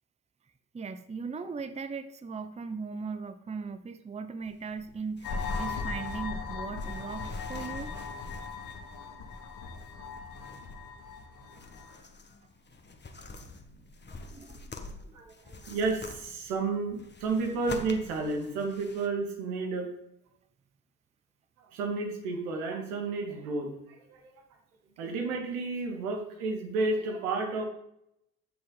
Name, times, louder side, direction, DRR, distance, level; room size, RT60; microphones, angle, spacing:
voice 1, 0.7-7.9 14.1-14.7, right 5 dB, 15° right, 11 dB, 0.7 m, -38 dB
sound 1, 4.4-19.1, left 3 dB, 25° left, 1.5 m, -48 dB
sound 2, 5.2-12.0, left 4 dB, 60° left, 3.1 m, -38 dB
voice 2, 15.1-19.9 21.6-24.3 25.0-27.6, right 3 dB, 80° right, 2 dB, 2.3 m, -32 dB
13.5 x 6.5 x 4.1 m, 0.78 s
hypercardioid pair, 60°, 44 cm